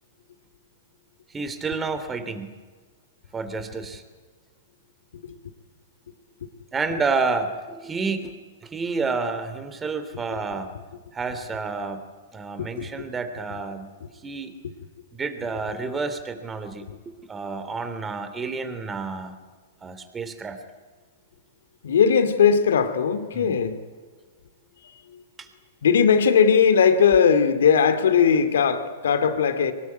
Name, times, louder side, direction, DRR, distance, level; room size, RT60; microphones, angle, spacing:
voice 1, 1.3-2.5 3.3-4.0 6.7-8.3 8.6-10.7 11.1-12.0 12.3-13.9 14.2-14.5 15.1-19.3 19.8-20.6 23.3-23.5 25.4-25.5, right 4 dB, 15° right, 9 dB, 3.1 m, -29 dB
voice 2, 21.8-23.8 25.1-25.2 25.8-29.7, left 7 dB, 80° left, 10 dB, 2.7 m, -19 dB
23.5 x 20.0 x 9.6 m, 1.4 s
hypercardioid pair, 130°, 0 cm